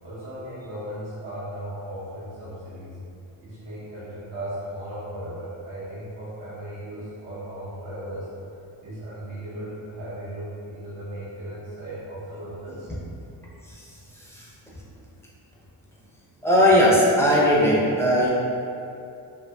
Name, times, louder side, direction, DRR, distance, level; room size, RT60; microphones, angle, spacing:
voice 1, 0.0-3.0 3.4-8.3 8.8-12.9, right 1 dB, 75° right, -11 dB, 1.0 m, -36 dB
voice 2, 16.4-18.3, equal, 5° left, -6 dB, 0.6 m, -18 dB
2.6 x 2.6 x 2.2 m, 2.6 s
cardioid pair, 60°, 45 cm